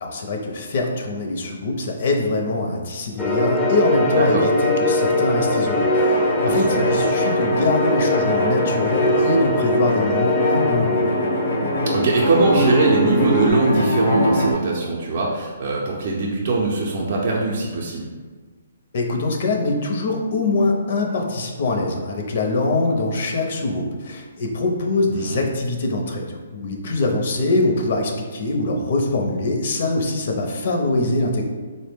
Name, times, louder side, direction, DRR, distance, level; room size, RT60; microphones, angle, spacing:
voice 1, 0.0-11.1 18.9-31.4, left 2 dB, 55° left, 2 dB, 0.6 m, -23 dB
sound 1, 3.2-13.5, left 1 dB, 5° left, 0.4 m, -22 dB
sound 2, 5.8-14.5, equal, 80° left, 0.8 m, -24 dB
voice 2, 6.4-6.9 11.9-18.1 25.1-25.4, right 3 dB, 45° right, -3 dB, 0.5 m, -21 dB
3.9 x 2.0 x 3.4 m, 1.4 s
hypercardioid pair, 150°, 0 cm